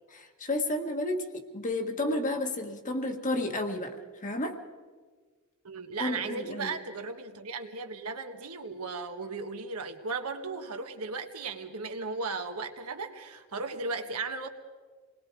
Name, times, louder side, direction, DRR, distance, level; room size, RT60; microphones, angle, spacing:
voice 1, 0.1-3.9 4.2-4.6 6.0-6.7, left 1 dB, 35° left, 5 dB, 1.6 m, -31 dB
voice 2, 5.6-14.5, right 4 dB, 80° right, 5 dB, 1.6 m, -36 dB
28.0 x 20.5 x 4.8 m, 1.5 s
head